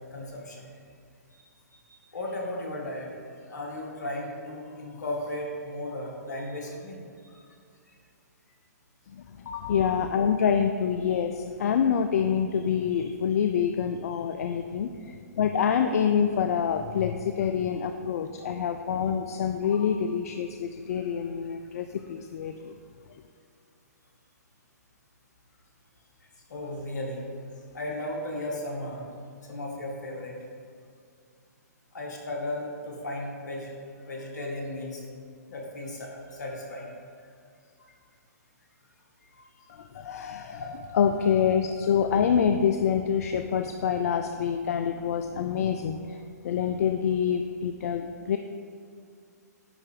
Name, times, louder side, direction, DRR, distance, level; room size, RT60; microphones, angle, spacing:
voice 1, 0.1-0.7 1.3-1.4 1.7-3.1 3.5-7.5 9.5-9.7 18.4-18.6 19.6-19.8 26.5-27.2 27.5-29.1 29.4-30.4 31.9-33.7 34.0-35.0 35.5-37.3 37.8-38.0 39.3-39.5 40.4-40.9, left 1 dB, 75° left, -1 dB, 1.9 m, -36 dB
voice 2, 9.1-22.8 39.7-46.2 46.4-48.4, left 7 dB, 60° left, 7 dB, 0.4 m, -26 dB
9.9 x 4.1 x 5.1 m, 2.2 s
hypercardioid pair, 125°, 9 cm